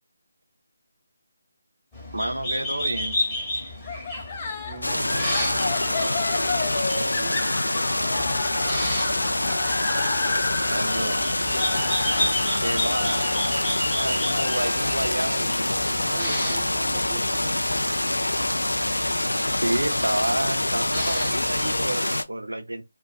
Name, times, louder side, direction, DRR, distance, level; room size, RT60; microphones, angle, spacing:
sound 1, 1.9-21.9, left 1 dB, 5° left, 1.1 m, -33 dB
voice 1, 2.1-3.2 10.6-11.2 12.6-13.3 13.9-16.2 19.6-22.8, right 1 dB, 75° right, 0.6 m, -29 dB
sound 2, 3.9-17.0, left 4 dB, 25° left, 0.5 m, -33 dB
voice 2, 4.7-6.2 6.7-7.4 11.4-11.9 16.0-17.6, right 5 dB, 25° right, 0.4 m, -41 dB
sound 3, 4.8-22.2, left 1 dB, 80° left, 0.3 m, -25 dB
2.5 x 2.2 x 2.2 m
figure-of-eight pair, 155°, 0 cm